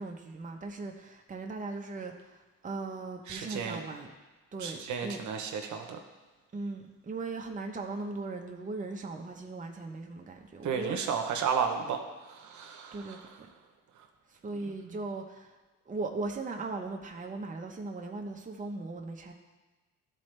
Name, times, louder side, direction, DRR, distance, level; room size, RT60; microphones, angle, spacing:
voice 1, 0.0-4.1 4.5-5.2 6.5-11.0 12.9-13.5 14.3-15.6 15.9-19.3, right 3 dB, 25° right, 2 dB, 0.9 m, -38 dB
voice 2, 3.3-3.8 4.6-6.0 10.6-13.3 14.6-14.9, right 6 dB, 70° right, 4 dB, 1.0 m, -33 dB
12.5 x 4.2 x 3.3 m, 1.2 s
cardioid pair, 90°, 30 cm